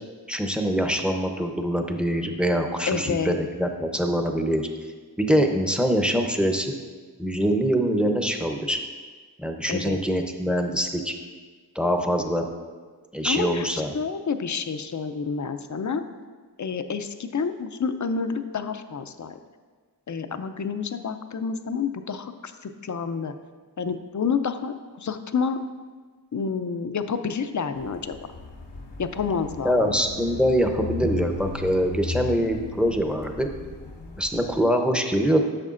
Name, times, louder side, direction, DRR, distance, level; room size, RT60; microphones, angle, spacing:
voice 1, 0.3-4.7 5.2-6.7 7.2-8.8 9.4-11.1 11.7-12.4 13.1-13.9 29.6-33.5 34.2-35.4, equal, ahead, 4 dB, 0.7 m, -24 dB
voice 2, 2.9-3.4 9.7-10.0 13.2-13.6 13.9-16.0 16.6-19.4 20.1-23.3 23.8-25.6 26.3-28.2 29.0-29.9, left 5 dB, 45° left, 9 dB, 0.5 m, -29 dB
sound 1, 27.7-34.6, left 3 dB, 75° left, 0.9 m, -36 dB
13.0 x 6.4 x 2.5 m, 1.4 s
wide cardioid pair, 55°, 43 cm